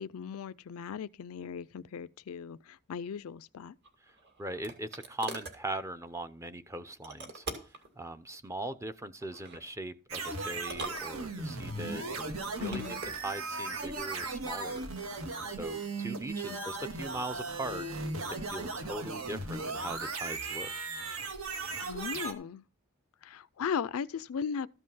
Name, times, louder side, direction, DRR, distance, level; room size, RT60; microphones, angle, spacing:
voice 1, 0.0-3.7 12.6-13.0 16.4-16.6 21.8-22.6 23.2-24.7, left 7 dB, 75° left, 0.4 m, -37 dB
sound 1, 3.8-5.6 7.0-7.9 9.2-9.7 10.6-11.6 12.4-13.2, right 3 dB, 50° right, 2.5 m, -43 dB
voice 2, 4.4-7.5 8.0-14.8 15.5-17.9 18.3-20.7, right 1 dB, 15° right, 0.6 m, -40 dB
sound 2, 10.1-22.3, right 3 dB, 75° right, 1.7 m, -37 dB
13.5 x 5.4 x 5.5 m
head